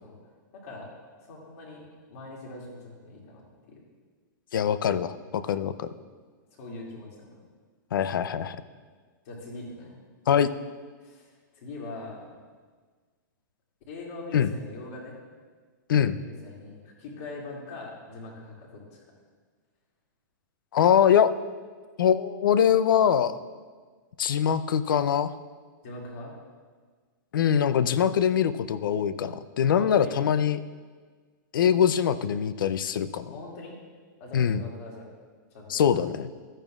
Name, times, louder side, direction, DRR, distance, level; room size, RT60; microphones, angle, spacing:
voice 1, 0.5-0.9 1.3-1.8 2.1-3.8 5.6-5.7 6.6-7.4 9.2-10.0 11.0-12.3 13.9-15.2 16.2-19.0 25.8-26.3 29.7-30.1 33.3-33.8 34.2-35.1 35.5-36.0, left 2 dB, 45° left, -3 dB, 2.4 m, -42 dB
voice 2, 4.5-5.9 7.9-8.6 10.3-10.5 14.3-14.5 15.9-16.2 20.7-21.3 22.0-23.4 24.2-25.3 27.3-30.6 31.5-33.3 34.3-34.6 35.7-36.3, left 8 dB, 80° left, 14 dB, 0.5 m, -23 dB
13.5 x 8.9 x 2.4 m, 1.5 s
hypercardioid pair, 165°, 11 cm